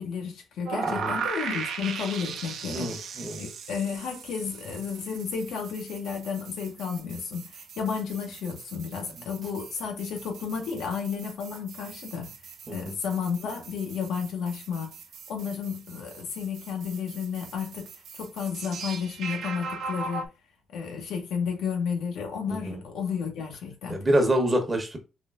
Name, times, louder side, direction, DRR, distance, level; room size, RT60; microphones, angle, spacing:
voice 1, 0.0-2.9 3.4-12.3 12.7-14.9 15.3-17.9 18.1-20.3 20.7-24.1, left 6 dB, 85° left, 0.8 m, -32 dB
sound 1, 0.7-20.3, right 5 dB, 75° right, 0.5 m, -39 dB
voice 2, 0.9-1.2 2.7-3.5 12.7-12.9 22.5-22.8 23.9-25.0, right 1 dB, 25° right, 1.0 m, -27 dB
3.7 x 2.7 x 2.4 m
cardioid pair, 85°, 0 cm